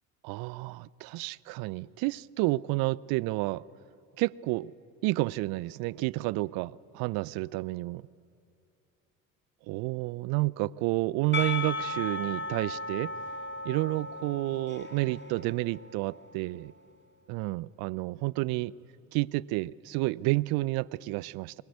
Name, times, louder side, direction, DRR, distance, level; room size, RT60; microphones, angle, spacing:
voice 1, 0.2-3.6 4.2-4.7 5.0-8.0 9.7-13.1 13.6-16.7 17.3-18.7 19.1-21.5, right 21 dB, 60° right, 22 dB, 0.6 m, -30 dB
Percussion / Church bell, 11.3-16.3, left 3 dB, 25° left, 4.3 m, -36 dB
23.5 x 22.0 x 9.4 m, 2.5 s
hypercardioid pair, 60°, 42 cm